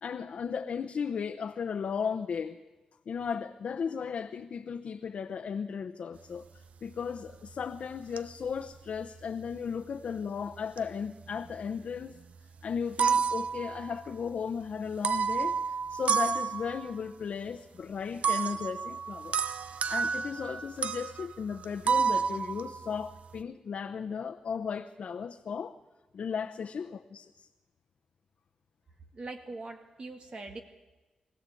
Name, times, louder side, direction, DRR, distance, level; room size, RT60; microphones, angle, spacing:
voice 1, 0.0-2.6 3.1-12.2 12.6-15.6 15.9-19.4 19.9-25.8 26.1-27.5, left 6 dB, 70° left, 0.9 m, -35 dB
sound 1, 7.2-7.6 8.2-9.6 10.5-11.7 12.0-12.1 12.7-14.3 14.9-17.0 18.2-23.4, right 6 dB, 75° right, 0.8 m, -31 dB
voice 2, 29.1-30.6, right 3 dB, 50° right, 2.1 m, -42 dB
24.0 x 15.5 x 8.5 m
cardioid pair, 70°, 2 cm